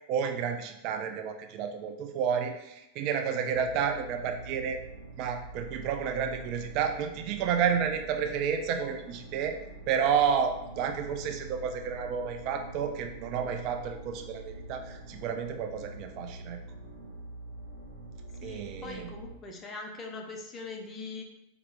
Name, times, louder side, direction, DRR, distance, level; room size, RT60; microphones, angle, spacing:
voice 1, 0.1-4.8 5.2-9.6 9.9-16.6 18.4-19.1, right 7 dB, 40° right, 6 dB, 0.3 m, -31 dB
sound 1, 3.5-19.4, right 2 dB, 80° right, 0.9 m, -45 dB
voice 2, 18.4-21.2, left 3 dB, 25° left, 2 dB, 0.6 m, -41 dB
4.3 x 2.3 x 3.1 m, 0.88 s
figure-of-eight pair, 90°, 0 cm